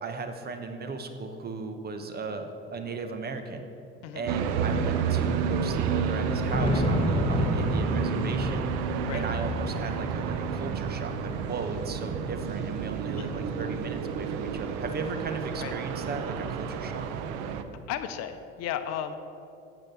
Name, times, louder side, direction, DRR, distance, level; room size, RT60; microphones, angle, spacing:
voice 1, 0.0-3.7 4.1-8.7 9.1-17.1, right 4 dB, 30° right, 7 dB, 1.0 m, -36 dB
sound 1, 2.6-2.7 2.8-2.9 3.8-3.9 4.4-4.5 6.1-12.5 12.9-13.9, left 1 dB, 20° left, 1.8 m, -32 dB
sound 2, 4.3-17.6, right 6 dB, 70° right, 0.7 m, -30 dB
voice 2, 13.1-13.5 15.6-15.7 17.9-19.2, left 10 dB, 60° left, 9 dB, 0.7 m, -34 dB
8.8 x 6.0 x 6.8 m, 2.7 s
supercardioid pair, 85°, 30 cm